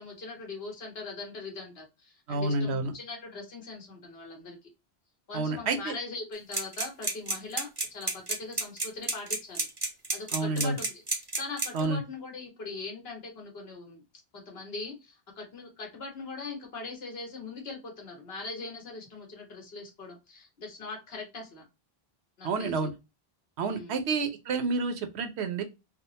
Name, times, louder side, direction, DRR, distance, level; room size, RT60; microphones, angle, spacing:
voice 1, 0.0-4.6 5.3-9.6 10.1-14.0 14.3-21.6 22.4-22.9 23.6-24.0, left 3 dB, 70° left, 1 dB, 1.4 m, -41 dB
voice 2, 2.3-2.9 5.3-6.0 10.3-10.8 11.7-12.0 22.4-22.9 23.6-25.6, right 3 dB, 80° right, 7 dB, 0.9 m, -29 dB
sound 1, 6.5-11.8, right 2 dB, 25° right, 0.7 m, -30 dB
3.6 x 2.0 x 2.7 m, 0.25 s
omnidirectional pair, 1.1 m